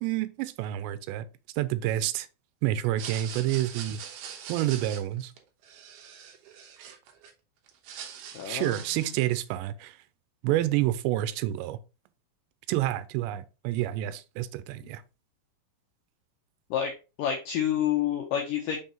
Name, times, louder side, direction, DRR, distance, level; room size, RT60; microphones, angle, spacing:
voice 1, 0.0-1.3 1.6-2.3 2.6-4.0 4.5-5.3 8.5-10.0 10.4-11.8 12.7-15.0, right 14 dB, 90° right, 2.8 m, -28 dB
sound 1, 2.8-7.3 7.7-9.3, right 8 dB, 75° right, 2.6 m, -42 dB
voice 2, 8.3-9.1 16.7-16.9 17.2-18.8, left 9 dB, 90° left, 1.9 m, -29 dB
6.3 x 5.5 x 2.9 m
omnidirectional pair, 5.0 m